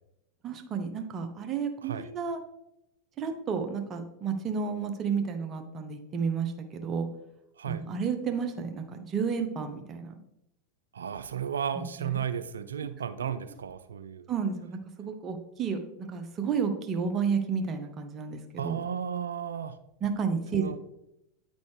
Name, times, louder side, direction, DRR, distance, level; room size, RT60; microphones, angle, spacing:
voice 1, 0.4-2.4 3.2-7.1 7.6-10.1 12.0-12.1 13.2-13.3 14.3-18.8 20.0-20.8, right 6 dB, 30° right, 6 dB, 0.8 m, -31 dB
voice 2, 10.9-14.2 18.6-19.8 20.5-20.8, right 8 dB, 75° right, 11 dB, 0.3 m, -34 dB
9.5 x 4.2 x 3.3 m, 0.85 s
figure-of-eight pair, 90°, 0 cm